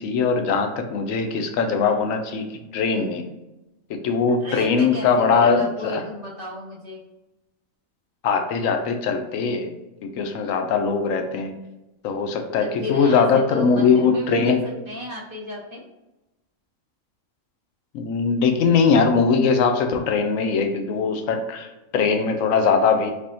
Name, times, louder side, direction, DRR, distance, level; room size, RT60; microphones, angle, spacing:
voice 1, 0.0-2.5 2.7-3.2 3.9-6.0 8.2-9.7 10.0-11.5 12.0-14.6 17.9-23.1, left 5 dB, 75° left, 6 dB, 1.0 m, -21 dB
voice 2, 4.4-7.0 12.8-15.9, left 2 dB, 45° right, -2 dB, 1.0 m, -34 dB
3.5 x 3.3 x 2.6 m, 0.98 s
omnidirectional pair, 1.4 m